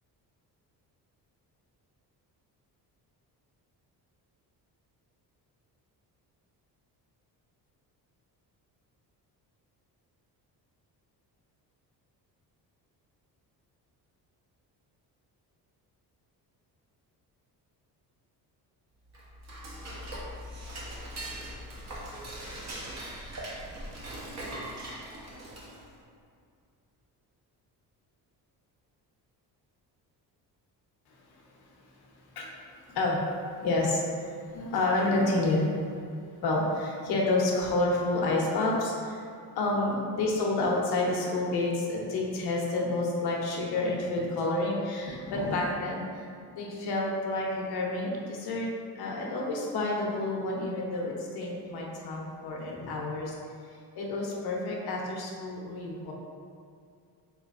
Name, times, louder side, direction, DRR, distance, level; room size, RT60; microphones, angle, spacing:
Dishes pots and pans / Cutlery silverware, 19.1-26.0, right 1 dB, 40° right, 0.8 m, -40 dB
voice 1, 32.3-35.7 36.4-39.2 39.5-48.7 49.0-53.4 53.7-56.1, left 2 dB, 70° left, -2 dB, 0.8 m, -29 dB
3.9 x 3.0 x 2.4 m, 2.3 s
cardioid pair, 125°, 39 cm